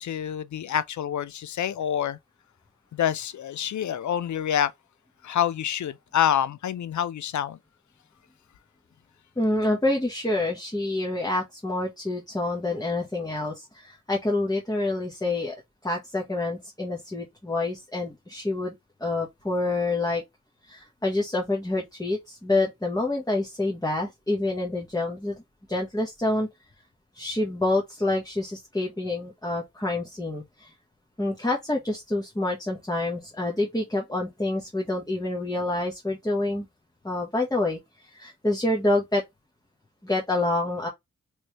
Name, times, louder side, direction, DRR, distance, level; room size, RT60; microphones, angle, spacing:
voice 1, 0.0-2.2 2.9-4.7 5.2-7.6, left 9 dB, 75° left, 0.4 m, -27 dB
voice 2, 9.4-15.5 15.8-18.7 19.0-20.2 20.6-25.4 25.7-26.5 27.1-30.7 31.2-36.7 37.0-39.2 40.0-40.9, left 2 dB, 10° left, 1.0 m, -27 dB
3.2 x 3.0 x 2.9 m
cardioid pair, 65°, 30 cm